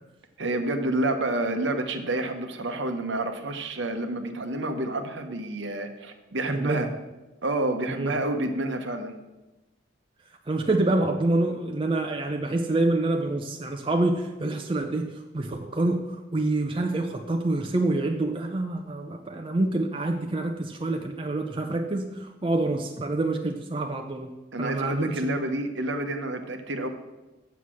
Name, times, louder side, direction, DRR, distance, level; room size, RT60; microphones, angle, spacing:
voice 1, 0.4-6.9 7.4-9.1 24.5-26.9, right 2 dB, 65° right, 6 dB, 1.0 m, -29 dB
voice 2, 6.5-6.9 7.9-8.2 10.5-24.3 24.6-25.4, right 2 dB, 25° right, 3 dB, 0.5 m, -27 dB
8.1 x 7.0 x 6.3 m, 1.1 s
head